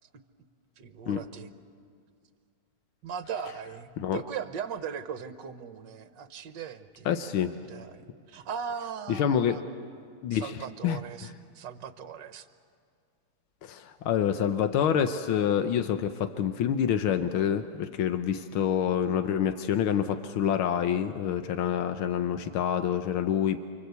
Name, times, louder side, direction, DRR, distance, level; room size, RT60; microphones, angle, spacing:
voice 1, 0.8-1.5 3.0-7.2 7.5-9.7 10.3-12.5, right 7 dB, 65° right, 9 dB, 1.7 m, -39 dB
voice 2, 7.1-7.6 9.1-9.6 10.2-10.5 10.8-11.0 13.6-23.6, left 9 dB, 85° left, 8 dB, 1.8 m, -27 dB
29.0 x 23.5 x 8.3 m, 2.3 s
omnidirectional pair, 2.2 m